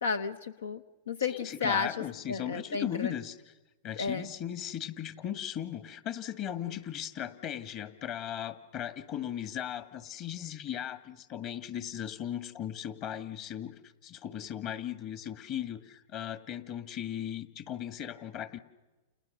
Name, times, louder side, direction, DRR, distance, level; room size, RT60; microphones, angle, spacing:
voice 1, 0.0-1.9 2.3-3.1 4.0-4.3, left 5 dB, 90° left, 12 dB, 0.9 m, -32 dB
voice 2, 1.3-3.4 3.8-18.6, left 10 dB, 40° left, 11 dB, 1.9 m, -37 dB
30.0 x 29.0 x 6.7 m, 1.1 s
hypercardioid pair, 125°, 0 cm